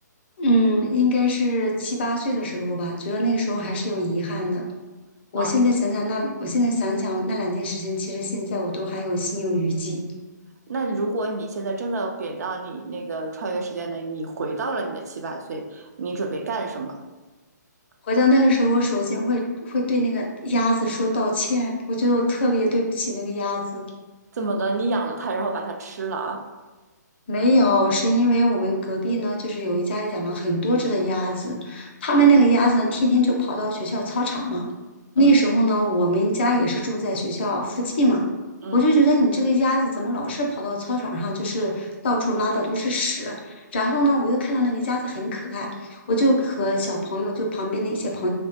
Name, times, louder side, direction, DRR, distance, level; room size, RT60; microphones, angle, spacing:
voice 1, 0.4-4.7 5.3-10.0 18.0-23.9 27.3-34.7 35.2-38.3 38.7-48.3, equal, 35° left, 1 dB, 0.4 m, -22 dB
voice 2, 10.7-17.0 24.3-26.5 35.2-35.3 38.6-38.9, right 3 dB, 60° right, 4 dB, 0.4 m, -29 dB
3.1 x 2.1 x 2.8 m, 1.2 s
hypercardioid pair, 160°, 10 cm